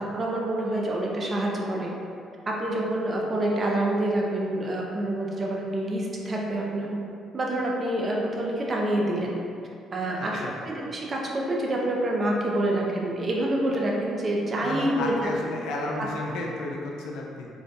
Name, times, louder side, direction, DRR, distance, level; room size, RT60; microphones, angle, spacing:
voice 1, 0.0-1.9 2.5-6.9 7.3-9.4 9.9-15.3 16.0-16.1, right 1 dB, 40° right, -2 dB, 0.6 m, -27 dB
voice 2, 10.2-10.5 14.6-17.5, left 2 dB, 75° left, -1 dB, 0.4 m, -33 dB
3.7 x 2.4 x 2.3 m, 2.5 s
hypercardioid pair, 55°, 0 cm